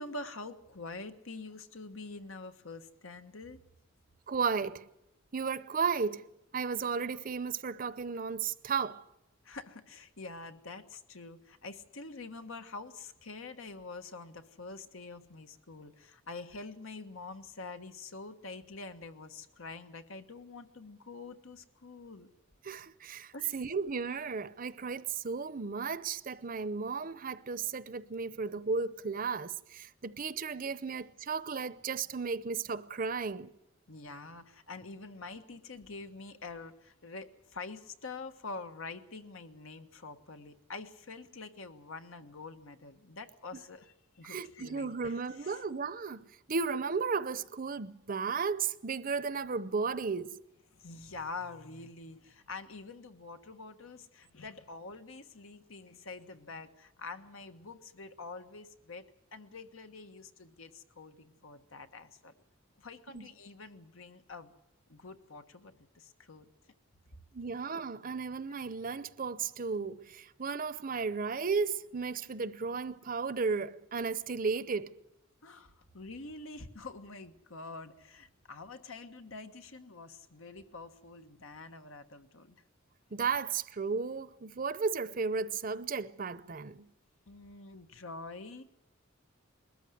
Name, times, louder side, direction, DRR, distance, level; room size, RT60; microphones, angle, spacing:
voice 1, 0.0-3.6 9.4-22.3 23.3-23.6 33.9-45.6 50.7-62.3 62.8-64.5 64.9-66.5 75.4-82.6 87.3-88.6, left 3 dB, 90° left, 1.4 m, -46 dB
voice 2, 4.3-4.9 5.3-6.3 6.5-9.1 22.6-33.5 44.2-50.4 63.1-63.3 67.3-74.9 83.1-86.9, right 5 dB, 45° right, 0.7 m, -34 dB
21.0 x 13.5 x 9.6 m
head